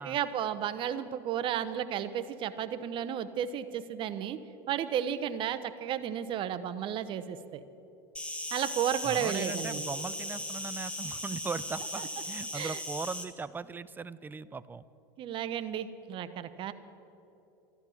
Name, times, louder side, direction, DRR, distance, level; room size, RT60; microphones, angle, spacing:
voice 1, 0.0-4.4 4.7-7.6 8.5-9.8 12.5-12.8 15.2-16.7, right 9 dB, 45° right, 12 dB, 0.9 m, -33 dB
Insect, 8.1-13.2, left 1 dB, 10° left, 1.5 m, -37 dB
voice 2, 9.0-14.8, right 4 dB, 15° right, 16 dB, 0.5 m, -39 dB
13.0 x 12.5 x 7.1 m, 2.9 s
hypercardioid pair, 100°, 12 cm